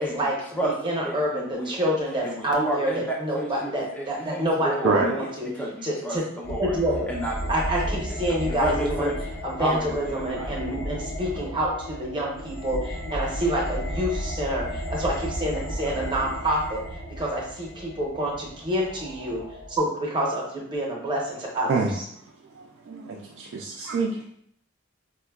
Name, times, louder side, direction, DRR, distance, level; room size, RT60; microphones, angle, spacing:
voice 1, 0.0-5.5 5.8-6.3 6.6-7.1 7.5-16.8 17.1-19.4 19.8-22.1, equal, 25° right, -2 dB, 0.7 m, -28 dB
voice 2, 1.0-1.8 2.2-6.8 7.1-8.0 8.3-9.1 9.6-10.8, right 1 dB, 10° left, -2 dB, 0.4 m, -31 dB
sound 1, 6.4-19.8, equal, 70° left, 0.8 m, -34 dB
voice 3, 22.4-24.3, right 3 dB, 65° right, 0 dB, 0.3 m, -26 dB
4.4 x 2.1 x 2.2 m, 0.69 s
head